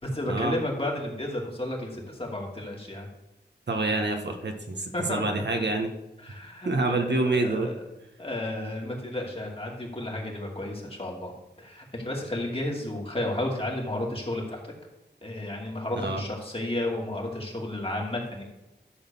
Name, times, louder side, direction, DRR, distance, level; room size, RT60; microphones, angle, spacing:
voice 1, 0.0-3.1 4.9-5.4 6.2-7.7 8.2-11.3 11.6-14.7 15.2-18.4, left 1 dB, 30° left, -1 dB, 2.5 m, -32 dB
voice 2, 3.7-5.9 6.6-7.7 16.0-16.2, right 2 dB, 75° right, 4 dB, 1.3 m, -27 dB
11.5 x 4.1 x 7.0 m, 0.98 s
wide cardioid pair, 65°, 18 cm